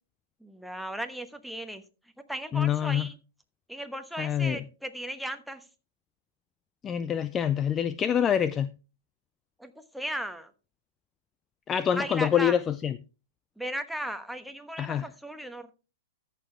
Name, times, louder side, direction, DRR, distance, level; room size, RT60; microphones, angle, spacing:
voice 1, 0.4-1.8 2.3-3.1 3.7-5.7 9.6-10.5 11.9-12.6 13.6-15.7, right 1 dB, ahead, 1.2 m, -36 dB
voice 2, 2.5-3.0 4.2-4.6 6.8-8.7 11.7-12.9 14.8-15.1, left 9 dB, 25° left, 0.4 m, -26 dB
14.0 x 6.8 x 3.4 m
hypercardioid pair, 120°, 0 cm